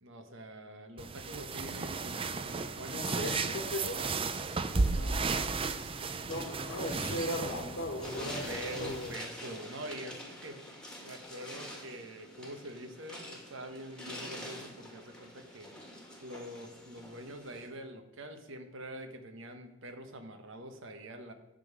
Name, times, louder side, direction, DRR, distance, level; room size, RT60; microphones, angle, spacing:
voice 1, 0.0-3.6 4.6-6.1 7.5-8.1 8.5-10.6 11.0-15.7 16.2-21.3, right 1 dB, 70° right, 6 dB, 1.3 m, -45 dB
sound 1, 1.0-9.2, right 4 dB, 25° right, 0.5 m, -34 dB
voice 2, 2.9-4.1 6.3-9.1, left 1 dB, 75° left, 0 dB, 1.4 m, -37 dB
sound 2, 4.7-17.7, left 1 dB, 5° left, 1.7 m, -46 dB
11.5 x 3.9 x 7.5 m, 0.93 s
head